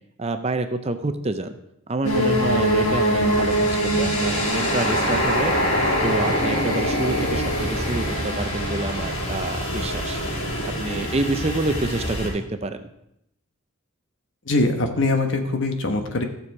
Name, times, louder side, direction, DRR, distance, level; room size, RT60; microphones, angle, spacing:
voice 1, 0.2-1.6 1.9-5.5 6.0-10.2 10.6-12.9, right 2 dB, 30° right, 9 dB, 0.6 m, -27 dB
sound 1, 2.0-12.3, equal, 90° left, 4.8 m, -23 dB
voice 2, 14.5-16.2, left 2 dB, 55° left, 5 dB, 1.2 m, -22 dB
14.0 x 7.0 x 4.7 m, 0.80 s
head